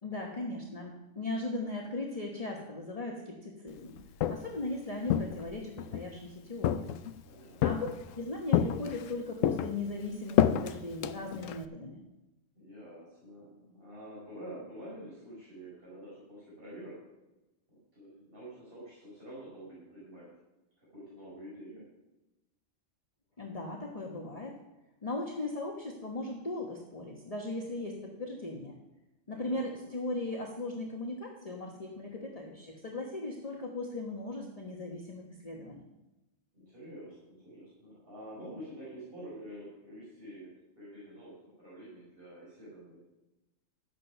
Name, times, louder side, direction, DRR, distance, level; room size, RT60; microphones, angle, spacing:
voice 1, 0.0-4.0 4.3-6.9 7.6-7.9 8.2-12.0 23.4-24.6 25.0-28.8 29.3-35.9, left 2 dB, 30° left, -1 dB, 1.2 m, -38 dB
Walk footsteps, 4.0-4.6 5.1-6.1 6.6-7.2 7.6-8.1 8.5-9.1 9.4-11.6, left 10 dB, 80° left, 1.0 m, -29 dB
voice 2, 7.2-7.8 12.5-16.9 17.7-20.3 20.8-21.9 29.3-29.9 36.5-40.5 40.8-43.0, right 1 dB, 45° right, -8 dB, 5.0 m, -48 dB
11.5 x 8.5 x 5.5 m, 0.99 s
omnidirectional pair, 1.3 m